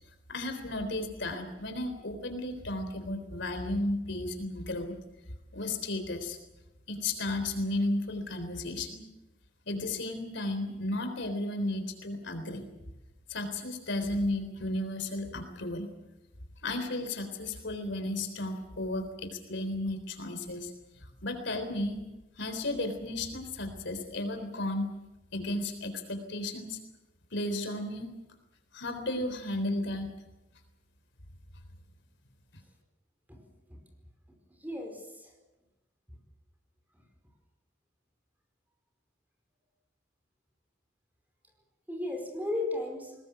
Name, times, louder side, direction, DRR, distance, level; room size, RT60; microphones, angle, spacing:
voice 1, 0.3-5.0 5.5-6.4 6.9-9.0 9.7-12.6 13.3-15.9 16.6-22.0 22.4-24.9 25.3-26.8 27.3-28.2 28.7-30.2, left 1 dB, 65° left, 8 dB, 3.8 m, -34 dB
voice 2, 34.5-35.4 36.9-37.0 41.9-43.2, left 2 dB, 10° right, 3 dB, 4.9 m, -35 dB
21.5 x 20.0 x 8.1 m, 0.99 s
head